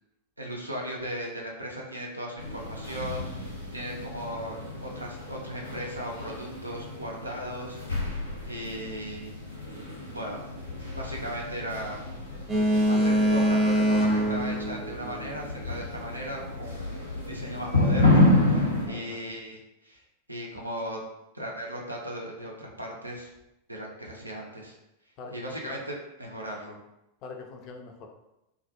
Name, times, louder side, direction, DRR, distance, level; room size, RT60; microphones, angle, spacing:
voice 1, 0.4-4.6 4.8-8.2 8.5-9.3 10.1-10.4 11.0-12.0 12.9-20.0 20.3-21.0 21.3-23.3 23.7-24.8 25.3-26.8, equal, 85° right, -1 dB, 0.5 m, -37 dB
sound 1, 2.4-18.9, left 2 dB, 85° left, 0.7 m, -30 dB
Boat Water vehicle, 12.5-15.6, equal, 20° right, 0.7 m, -24 dB
voice 2, 12.9-13.3 18.9-19.2 25.2-25.3 25.7-25.8 27.2-28.1, left 4 dB, 40° left, 3 dB, 0.4 m, -43 dB
2.3 x 2.1 x 2.7 m, 0.89 s
figure-of-eight pair, 90°, 0 cm